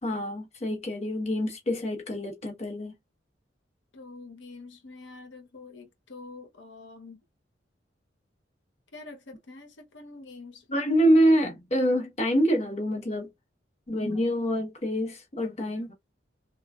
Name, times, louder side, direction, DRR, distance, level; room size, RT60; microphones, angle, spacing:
voice 1, 0.0-2.9 10.7-13.3 13.9-15.9, equal, 35° left, 1.0 m, -26 dB
voice 2, 3.9-7.2 8.9-10.9, left 3 dB, 85° left, 0.8 m, -46 dB
3.2 x 2.4 x 2.3 m
head